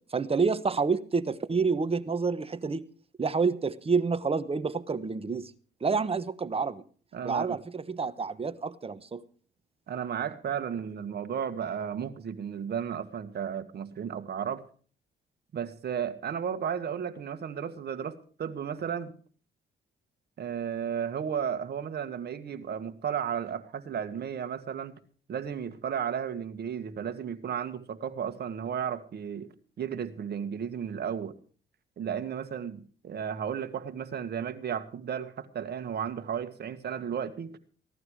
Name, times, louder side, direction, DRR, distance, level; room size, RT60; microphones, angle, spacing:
voice 1, 0.1-2.8 3.2-5.5 5.8-6.8 7.2-9.2, right 4 dB, 30° right, 1.1 m, -28 dB
voice 2, 7.1-7.6 9.9-14.6 15.5-19.1 20.4-25.0 25.3-29.5 29.8-31.3 32.0-37.6, right 8 dB, 55° right, 1.8 m, -34 dB
16.5 x 12.0 x 4.8 m
cardioid pair, 90°, 20 cm